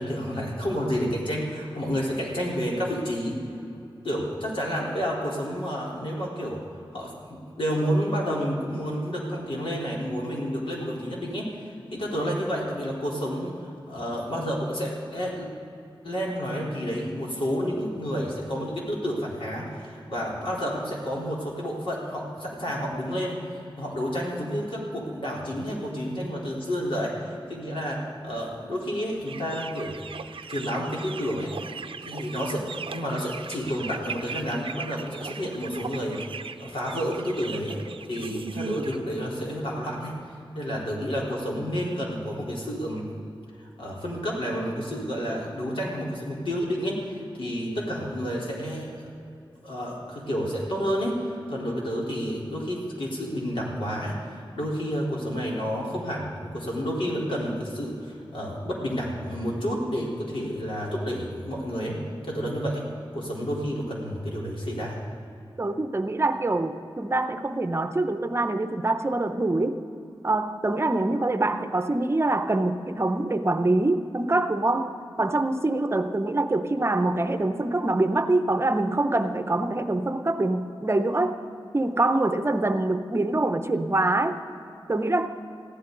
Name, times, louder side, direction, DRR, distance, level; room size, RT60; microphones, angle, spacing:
voice 1, 0.0-3.4 4.0-6.6 6.9-15.5 16.0-29.9 30.5-31.5 32.0-37.8 38.1-40.2 40.5-43.0 43.6-49.1 49.6-62.0 62.2-62.9 63.1-65.0, equal, 75° left, -4 dB, 3.9 m, -30 dB
sound 1, 29.3-39.0, right 5 dB, 70° right, 0.5 m, -39 dB
voice 2, 65.6-69.8 70.2-74.9 75.2-81.3 81.7-84.4 84.9-85.3, right 2 dB, 30° right, 8 dB, 0.8 m, -24 dB
21.5 x 14.5 x 3.9 m, 2.6 s
wide cardioid pair, 105°, 9 cm